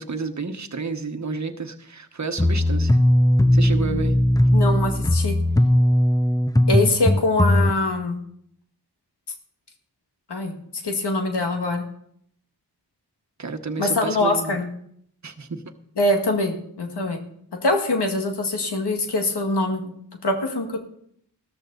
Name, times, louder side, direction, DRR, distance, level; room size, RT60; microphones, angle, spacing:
voice 1, 0.0-3.0 3.5-4.2 13.4-14.6 15.2-15.6, right 4 dB, 40° right, 7 dB, 1.3 m, -30 dB
sound 1, 2.4-7.7, left 1 dB, 10° left, 0.6 m, -18 dB
voice 2, 4.5-5.3 6.7-8.2 10.3-10.5 10.8-11.8 13.8-14.7 16.0-17.2 17.6-19.9 20.2-20.8, left 2 dB, 75° left, 4 dB, 1.9 m, -23 dB
13.5 x 13.0 x 4.0 m, 0.69 s
cardioid pair, 45°, 41 cm